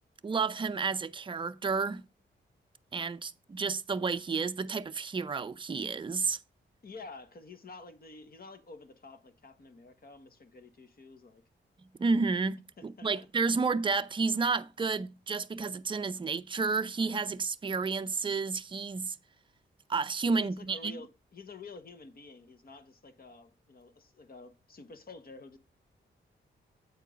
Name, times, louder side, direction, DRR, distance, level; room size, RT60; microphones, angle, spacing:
voice 1, 0.2-2.0 2.9-6.4 12.0-19.2 19.9-21.0, right 4 dB, 25° right, 0.5 m, -31 dB
voice 2, 6.8-11.4 12.8-13.3 20.3-25.6, left 3 dB, 50° left, 1.1 m, -50 dB
8.2 x 4.5 x 5.0 m
cardioid pair, 75°, 20 cm